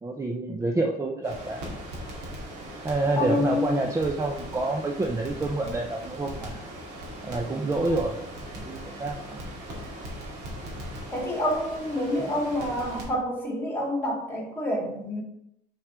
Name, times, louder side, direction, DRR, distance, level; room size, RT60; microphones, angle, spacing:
voice 1, 0.0-1.6 2.8-6.6 7.2-8.2 8.5-9.4 12.2-12.3, right 2 dB, 15° right, 2 dB, 0.6 m, -28 dB
Crackle, 1.2-13.0, equal, 80° right, 2.5 m, -39 dB
voice 2, 3.2-3.8 11.1-15.2, left 1 dB, 15° left, -1 dB, 2.5 m, -28 dB
6.3 x 4.8 x 4.4 m, 0.80 s
cardioid pair, 110°, 17 cm